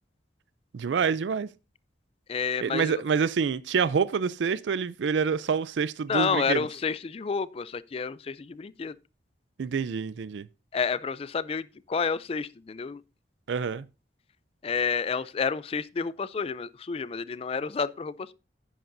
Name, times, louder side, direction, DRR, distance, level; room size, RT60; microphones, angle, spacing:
voice 1, 0.7-1.5 2.6-6.7 9.6-10.5 13.5-13.8, right 6 dB, 80° right, 0.4 m, -27 dB
voice 2, 2.3-3.0 6.1-8.9 10.7-13.0 14.6-18.3, left 5 dB, 30° left, 0.3 m, -30 dB
10.0 x 9.3 x 2.6 m
head